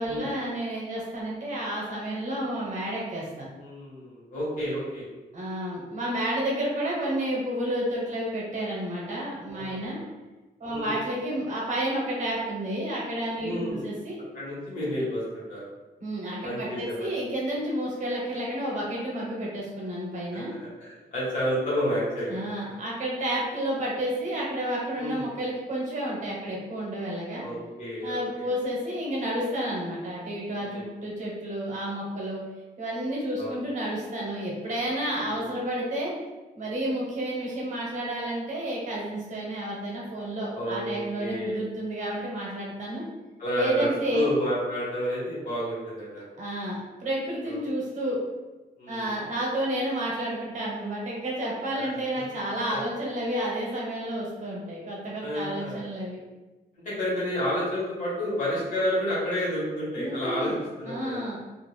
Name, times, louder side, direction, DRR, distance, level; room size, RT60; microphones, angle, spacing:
voice 1, 0.0-3.5 5.3-10.0 10.6-14.2 16.0-20.5 22.3-27.4 28.0-32.4 32.8-36.1 36.6-43.0 43.6-44.3 46.4-48.2 48.9-56.2 60.0-60.6 60.8-61.4, right 1 dB, 45° right, -4 dB, 0.8 m, -31 dB
voice 2, 3.5-5.1 9.5-10.1 10.7-10.9 13.4-13.9 14.3-15.7 16.4-17.1 20.3-22.4 25.0-25.3 27.4-28.5 30.5-30.9 33.4-33.6 35.1-35.4 40.5-41.6 43.4-46.3 47.4-47.6 48.8-49.1 51.7-51.9 55.2-55.8 56.8-60.5 60.8-61.2, equal, 50° left, -9 dB, 1.2 m, -30 dB
2.4 x 2.3 x 3.2 m, 1.2 s
wide cardioid pair, 165°, 17 cm